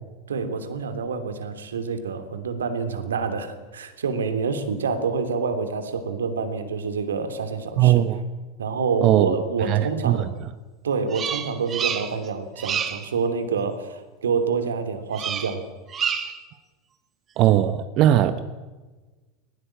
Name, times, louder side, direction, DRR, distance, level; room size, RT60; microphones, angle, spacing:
voice 1, 0.3-8.1 8.6-10.3 10.8-15.6, right 5 dB, 85° right, 9 dB, 2.9 m, -27 dB
voice 2, 7.8-8.2 9.0-9.4 9.7-10.2 17.4-18.4, right 12 dB, 50° right, 11 dB, 1.3 m, -19 dB
Bird vocalization bird call bird song, 11.1-12.3 12.6-13.1 15.1-15.6 15.9-16.5, right 8 dB, 35° right, 2.5 m, -28 dB
21.5 x 19.5 x 8.9 m, 1.2 s
hypercardioid pair, 90°, 0 cm